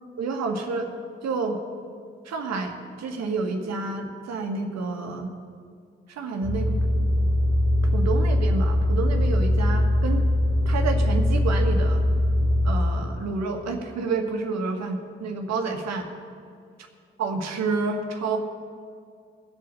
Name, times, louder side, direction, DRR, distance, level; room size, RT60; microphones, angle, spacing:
voice 1, 0.2-0.9 1.2-1.6 2.3-2.7 3.0-5.3 6.1-6.8 7.8-10.3 10.7-12.0 12.6-16.1 17.2-18.4, right 4 dB, 60° right, 3 dB, 1.9 m, -29 dB
sound 1, 6.4-12.7, left 1 dB, 60° left, 2.8 m, -21 dB
18.0 x 7.9 x 6.9 m, 2.2 s
figure-of-eight pair, 40°, 31 cm